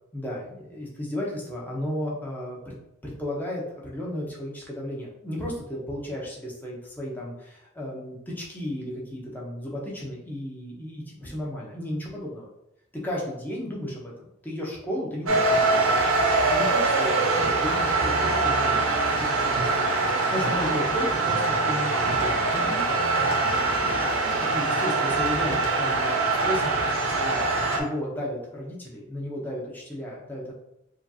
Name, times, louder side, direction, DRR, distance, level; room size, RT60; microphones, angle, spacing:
voice 1, 0.1-2.7 3.0-12.5 13.0-14.1 14.4-15.9 16.5-18.7 19.2-19.7 20.3-23.0 24.4-30.5, equal, 10° left, -4 dB, 0.9 m, -34 dB
sound 1, 15.3-27.8, right 3 dB, 85° right, 0.7 m, -23 dB
Piano, 17.9-24.8, equal, 70° left, 1.3 m, -37 dB
4.9 x 2.5 x 2.7 m, 0.84 s
head